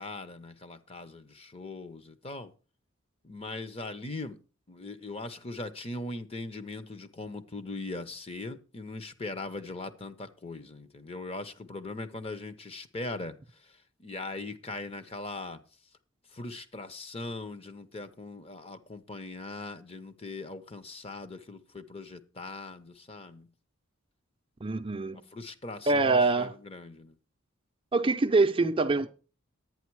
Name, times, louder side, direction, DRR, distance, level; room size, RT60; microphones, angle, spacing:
voice 1, 0.0-2.5 3.2-4.4 4.7-13.3 14.0-15.6 16.3-23.5 25.3-27.1, left 2 dB, 30° left, 0.8 m, -40 dB
voice 2, 24.6-25.2 25.9-26.6 27.9-29.1, right 3 dB, 25° right, 0.6 m, -24 dB
10.5 x 9.2 x 4.6 m
head